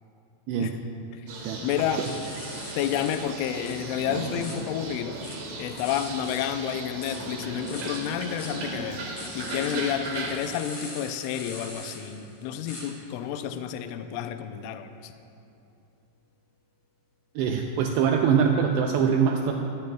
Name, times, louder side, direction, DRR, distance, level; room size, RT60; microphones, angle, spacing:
voice 1, 0.5-0.8 1.4-1.6 2.0-2.1 17.4-19.5, right 7 dB, 90° right, 2 dB, 2.4 m, -23 dB
sound 1, 1.3-10.4, right 3 dB, 60° right, 2.8 m, -36 dB
voice 2, 1.6-2.0 2.8-5.2 5.6-9.1 9.4-15.1, left 9 dB, 80° left, 8 dB, 3.0 m, -30 dB
sound 2, 2.0-3.2 3.6-4.5 5.1-6.4 6.8-8.5 9.2-12.8 17.9-18.0, left 2 dB, 35° left, 4.2 m, -43 dB
23.5 x 15.0 x 2.3 m, 2.7 s
omnidirectional pair, 5.7 m